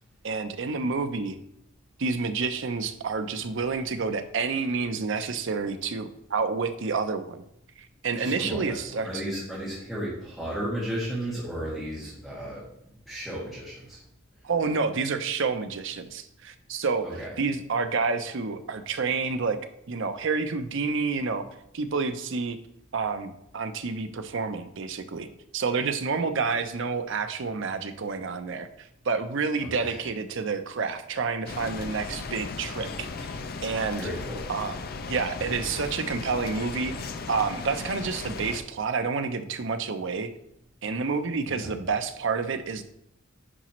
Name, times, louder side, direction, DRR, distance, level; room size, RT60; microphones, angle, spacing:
voice 1, 0.2-1.4 2.0-7.4 8.0-9.1 14.4-17.0 17.4-19.6 19.9-21.5 21.7-22.6 22.9-25.3 25.5-34.0 34.5-34.8 35.1-36.9 37.3-40.3 40.8-42.8, right 4 dB, 65° right, 8 dB, 0.6 m, -29 dB
voice 2, 8.2-12.6 13.1-14.0 17.0-17.3 29.6-30.0 33.9-34.5 41.4-41.8, right 1 dB, ahead, -9 dB, 2.0 m, -34 dB
sound 1, 31.5-38.6, left 4 dB, 50° left, 0.5 m, -36 dB
9.9 x 5.0 x 3.1 m, 0.78 s
head